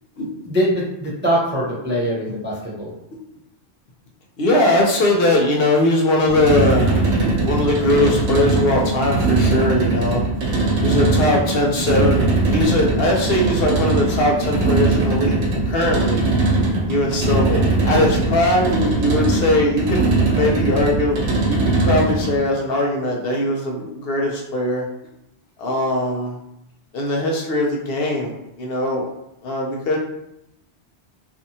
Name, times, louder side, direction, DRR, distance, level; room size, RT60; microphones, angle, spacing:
voice 1, 0.5-2.9, equal, 20° right, -6 dB, 0.3 m, -22 dB
voice 2, 4.4-10.5 10.8-15.4 15.7-16.3 16.9-21.2 21.5-24.8 25.6-26.4 26.9-29.1 29.4-30.0, left 1 dB, 65° left, -1 dB, 0.8 m, -20 dB
sound 1, 6.3-22.4, right 2 dB, 85° right, 1.0 m, -20 dB
2.6 x 2.4 x 2.6 m, 0.82 s
omnidirectional pair, 1.1 m